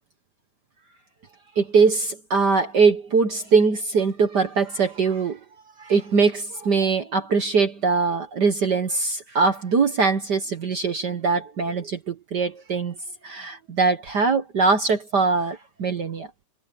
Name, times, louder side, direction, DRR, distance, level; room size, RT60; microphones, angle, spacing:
voice 1, 1.6-5.4 5.8-13.0 13.2-16.3, right 4 dB, 60° right, 1.0 m, -22 dB
omnidirectional pair, 3.7 m